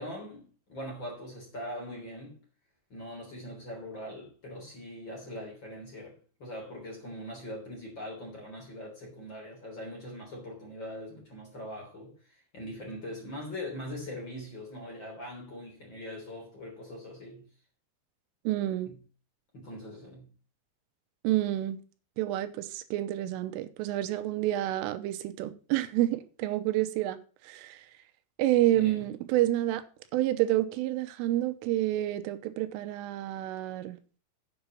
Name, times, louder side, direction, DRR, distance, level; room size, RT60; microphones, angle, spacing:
voice 1, 0.0-2.4 2.9-17.5 18.8-19.0 19.5-20.3 28.7-28.9, left 1 dB, 25° left, 3.5 m, -42 dB
voice 2, 18.5-18.9 21.2-21.8 22.2-27.2 27.4-27.8 28.4-29.8 30.1-34.0, right 14 dB, 85° right, 3.3 m, -29 dB
7.9 x 7.0 x 7.3 m
omnidirectional pair, 5.7 m